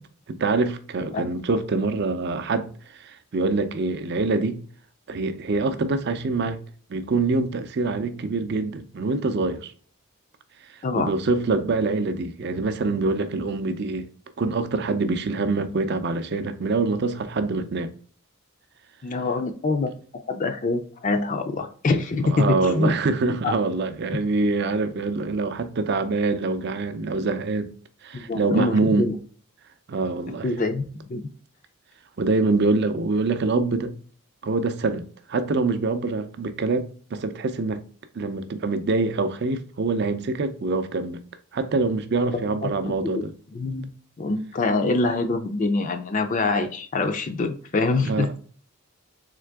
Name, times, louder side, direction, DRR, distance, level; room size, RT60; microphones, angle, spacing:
voice 1, 0.3-2.7 3.0-4.6 5.1-6.6 6.9-9.7 10.9-14.1 14.4-17.9 22.2-27.7 28.0-29.1 29.9-30.5 32.2-33.9 34.4-35.0 35.3-37.8 38.2-41.2 41.5-43.3 48.0-48.4, right 3 dB, 50° right, 0.4 m, -25 dB
voice 2, 19.0-22.9 23.4-23.5 28.1-29.2 30.4-30.8 31.1-31.2 42.6-42.7 43.1-43.2 43.5-43.9 44.2-48.4, left 3 dB, 35° left, 0.4 m, -25 dB
3.7 x 3.2 x 3.4 m
head